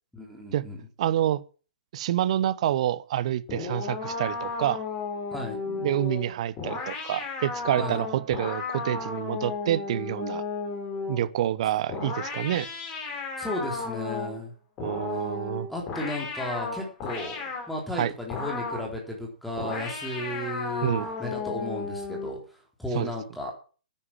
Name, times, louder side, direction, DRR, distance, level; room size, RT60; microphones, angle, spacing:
voice 1, 0.1-0.8 5.3-5.6 7.8-8.0 13.4-14.5 15.7-20.9 21.2-22.4 22.8-23.5, left 1 dB, ahead, 3.8 m, -34 dB
voice 2, 1.0-1.4 1.9-4.8 5.8-10.4 11.1-12.7 14.8-15.7 17.9-18.1 20.8-21.1 22.9-23.1, right 12 dB, 45° right, 0.9 m, -27 dB
sound 1, 3.5-11.3 11.9-14.4 14.8-17.7 18.3-18.9 19.6-22.4, left 4 dB, 25° left, 4.5 m, -34 dB
10.0 x 9.8 x 7.4 m
figure-of-eight pair, 120°, 5 cm